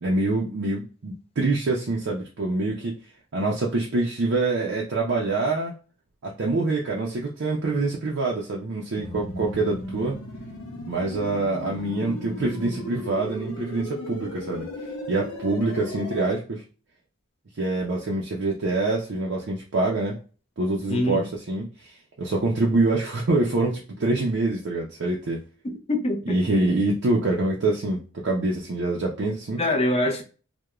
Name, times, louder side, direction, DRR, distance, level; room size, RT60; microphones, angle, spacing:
voice 1, 0.0-2.9 3.3-5.7 6.2-10.2 10.9-14.7 15.1-16.6 17.6-20.2 20.6-21.9 22.2-25.4 26.3-29.6, right 2 dB, 55° right, 0.5 m, -25 dB
sound 1, 9.0-16.4, left 1 dB, 85° left, 0.8 m, -36 dB
voice 2, 20.9-21.3 25.6-26.4 29.6-30.2, left 1 dB, 30° left, 0.5 m, -24 dB
2.3 x 2.1 x 2.9 m
head